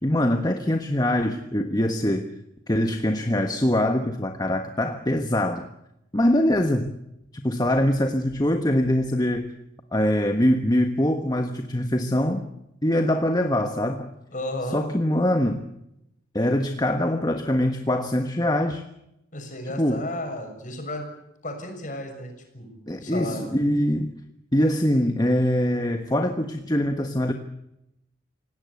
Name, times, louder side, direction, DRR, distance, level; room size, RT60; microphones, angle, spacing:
voice 1, 0.0-2.3 2.7-5.7 6.1-6.9 7.3-9.5 9.9-12.5 12.8-14.1 14.7-15.6 16.3-18.8 19.8-20.0 22.9-24.1 24.5-27.3, left 1 dB, 20° left, 6 dB, 1.3 m, -23 dB
voice 2, 14.3-14.8 19.3-21.1 21.4-22.7 22.9-23.4, left 1 dB, 40° left, 4 dB, 6.6 m, -33 dB
28.0 x 17.5 x 8.4 m, 0.82 s
head